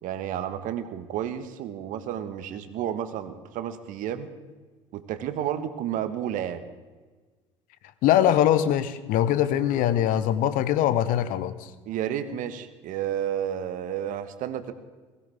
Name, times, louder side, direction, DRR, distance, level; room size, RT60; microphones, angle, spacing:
voice 1, 0.0-4.3 4.9-6.6 11.9-14.7, right 10 dB, 55° right, 10 dB, 1.5 m, -31 dB
voice 2, 8.0-11.7, left 11 dB, 55° left, 13 dB, 1.1 m, -22 dB
21.5 x 16.5 x 3.6 m, 1.3 s
hypercardioid pair, 65°, 16 cm